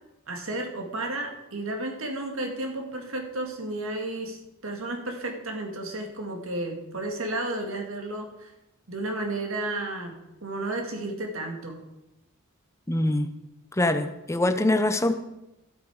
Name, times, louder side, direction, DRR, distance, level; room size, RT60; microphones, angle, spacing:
voice 1, 0.3-8.5 8.9-11.8, right 2 dB, 75° right, 3 dB, 2.0 m, -32 dB
voice 2, 12.9-13.3 13.8-15.2, left 1 dB, 15° left, 9 dB, 0.7 m, -24 dB
13.0 x 8.4 x 4.8 m, 0.93 s
head